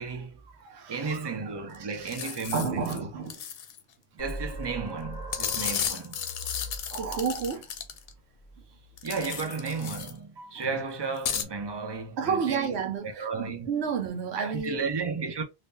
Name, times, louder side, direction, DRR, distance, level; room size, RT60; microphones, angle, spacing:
voice 1, 0.0-0.4 0.9-3.1 4.2-6.2 9.0-12.7 13.0-13.7 14.4-15.4, right 4 dB, 35° right, 0.5 m, -33 dB
voice 2, 0.6-3.4 6.9-7.7 10.6-10.7 12.2-14.8, right 6 dB, 85° right, 0.9 m, -32 dB
sound 1, 1.7-1.8 2.0-3.0 3.3-3.8 5.3-8.1 9.0-10.1 11.2-11.4, left 8 dB, 70° left, 0.8 m, -34 dB
sound 2, 4.2-9.5, equal, 35° left, 1.3 m, -42 dB
3.6 x 2.6 x 2.6 m
omnidirectional pair, 1.1 m